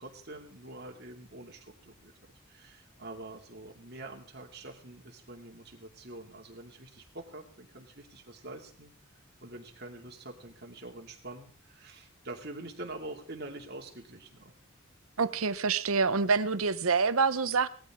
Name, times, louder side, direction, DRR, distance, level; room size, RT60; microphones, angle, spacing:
voice 1, 0.0-2.1 2.5-8.9 9.4-14.5 15.3-15.5, right 2 dB, 50° right, 2.5 m, -45 dB
voice 2, 15.2-17.7, right 4 dB, 90° right, 0.9 m, -26 dB
19.0 x 14.0 x 3.7 m
head